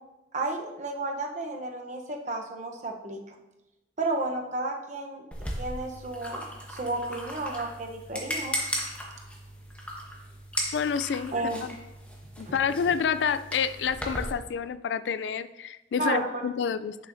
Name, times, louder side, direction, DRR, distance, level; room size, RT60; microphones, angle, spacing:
voice 1, 0.3-3.3 4.0-5.2 5.6-8.7 11.3-11.7 12.5-12.6 16.0-16.2, right 2 dB, 45° right, 2 dB, 0.9 m, -32 dB
sound 1, 5.3-14.3, equal, 10° left, 1.1 m, -37 dB
voice 2, 10.7-11.3 11.6-11.7 12.4-17.0, left 7 dB, 90° left, 15 dB, 0.3 m, -28 dB
8.8 x 7.1 x 2.7 m, 0.97 s
head